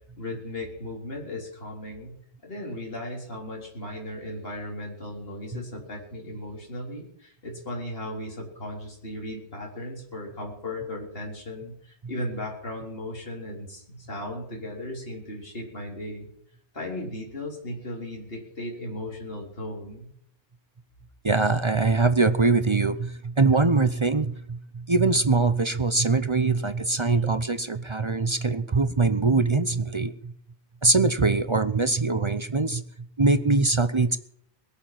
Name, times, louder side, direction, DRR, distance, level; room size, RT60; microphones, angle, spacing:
voice 1, 0.2-2.2 2.4-16.3 16.7-20.1, left 1 dB, 55° left, -1 dB, 4.1 m, -36 dB
voice 2, 21.2-30.3 30.8-32.8 33.2-34.2, right 3 dB, 30° right, 12 dB, 0.7 m, -23 dB
21.5 x 7.3 x 7.6 m, 0.68 s
omnidirectional pair, 1.2 m